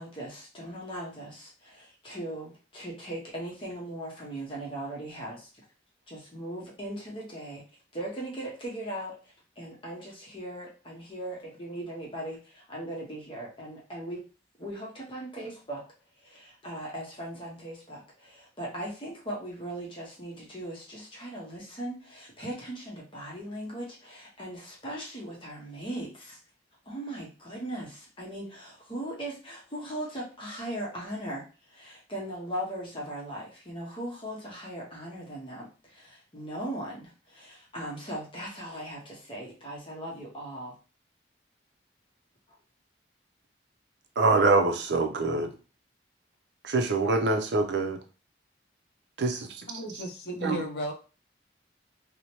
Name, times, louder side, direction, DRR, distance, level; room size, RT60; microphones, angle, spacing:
voice 1, 0.0-5.5 6.1-7.6 7.9-14.2 14.6-15.8 16.2-26.4 26.9-40.8 42.5-42.6, right 1 dB, 30° left, -3 dB, 0.8 m, -39 dB
voice 2, 44.2-45.5 46.6-48.0 49.2-49.5 50.4-50.6, right 3 dB, 75° right, 4 dB, 0.5 m, -24 dB
voice 3, 49.7-50.9, equal, 60° left, 2 dB, 0.5 m, -34 dB
2.8 x 2.1 x 2.9 m, 0.34 s
head